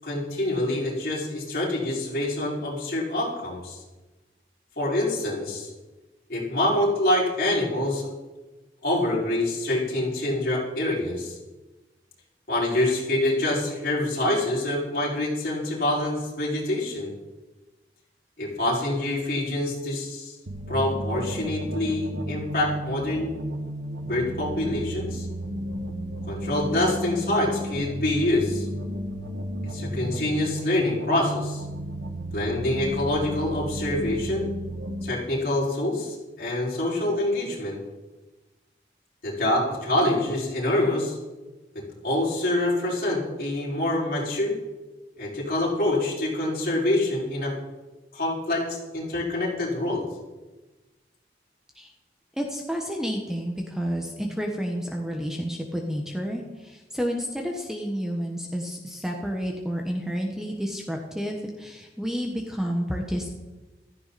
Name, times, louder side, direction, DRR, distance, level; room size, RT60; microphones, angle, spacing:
voice 1, 0.0-3.8 4.8-5.7 6.3-8.1 8.8-11.4 12.5-17.1 18.4-20.4 20.7-23.3 24.0-25.3 26.3-28.7 29.6-31.6 32.3-34.5 35.0-37.8 39.2-41.2 41.7-44.5 45.2-47.5 48.1-50.0, left 1 dB, 55° left, -5 dB, 5.7 m, -26 dB
sound 1, 20.5-35.1, equal, 85° right, 1.4 m, -33 dB
voice 2, 52.4-63.3, equal, 5° right, 1 dB, 1.3 m, -30 dB
15.5 x 14.0 x 4.3 m, 1.2 s
head